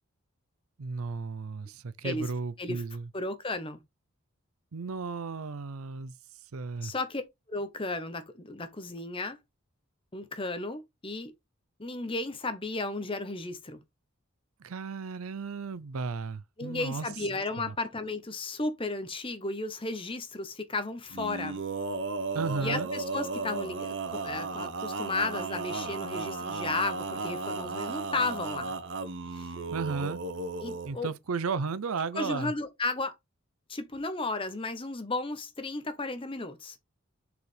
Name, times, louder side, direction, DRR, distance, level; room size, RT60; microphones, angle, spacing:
voice 1, 0.8-3.1 4.7-6.1 6.5-6.9 14.6-17.1 17.6-17.8 22.3-22.9 29.7-30.2 30.8-32.5, right 4 dB, 80° right, 0.6 m, -34 dB
voice 2, 3.1-3.8 6.8-7.2 7.5-9.4 10.1-11.3 11.8-13.8 16.6-21.6 22.6-28.7 29.2-29.5 30.6-31.1 32.1-33.1 33.7-36.8, left 2 dB, 25° left, 0.9 m, -34 dB
Male singing, 21.1-30.9, right 3 dB, 55° right, 0.9 m, -35 dB
6.6 x 4.9 x 3.3 m
head